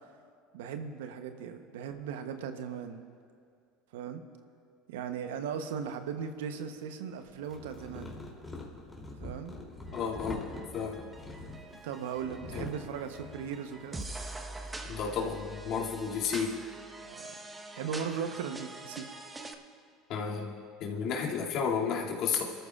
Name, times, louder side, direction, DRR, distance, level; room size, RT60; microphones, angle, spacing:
voice 1, 0.5-3.0 3.9-4.2 4.9-8.2 9.2-9.5 11.8-14.1 17.0-17.4 17.8-19.1, right 7 dB, 80° right, 8 dB, 0.9 m, -38 dB
sound 1, 5.6-6.6 7.3-15.0, left 2 dB, 15° left, 3.1 m, -45 dB
voice 2, 9.9-10.4 10.7-11.0 12.5-12.7 14.8-16.5 20.1-20.5 20.8-22.4, left 6 dB, 60° left, -3 dB, 2.5 m, -32 dB
sound 2, 9.9-19.5, right 2 dB, 15° right, 1.1 m, -45 dB
26.0 x 13.5 x 2.5 m, 2.3 s
hypercardioid pair, 80°, 0 cm